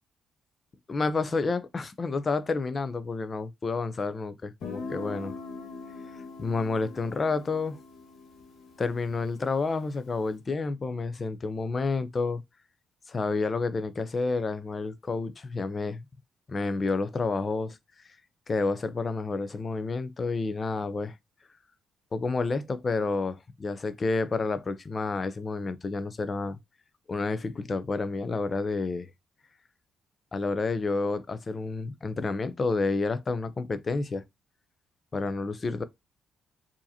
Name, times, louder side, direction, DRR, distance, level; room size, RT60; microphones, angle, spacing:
voice 1, 0.9-5.3 6.4-7.8 8.8-12.4 13.1-16.1 16.5-17.8 18.5-21.1 22.1-26.6 27.1-29.1 30.3-34.2 35.1-35.8, left 3 dB, 35° left, 0.6 m, -29 dB
Guitar, 4.6-10.2, left 4 dB, 80° left, 1.6 m, -43 dB
4.7 x 2.8 x 2.8 m
cardioid pair, 90°, 0 cm